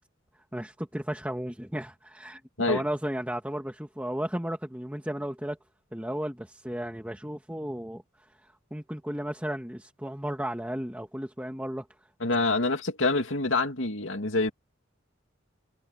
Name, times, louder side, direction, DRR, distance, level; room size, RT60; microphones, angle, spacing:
voice 1, 0.5-2.4 2.7-5.6 5.9-11.9, equal, 5° right, 2.1 m, -34 dB
voice 2, 12.2-14.5, left 3 dB, 75° left, 2.4 m, -26 dB
head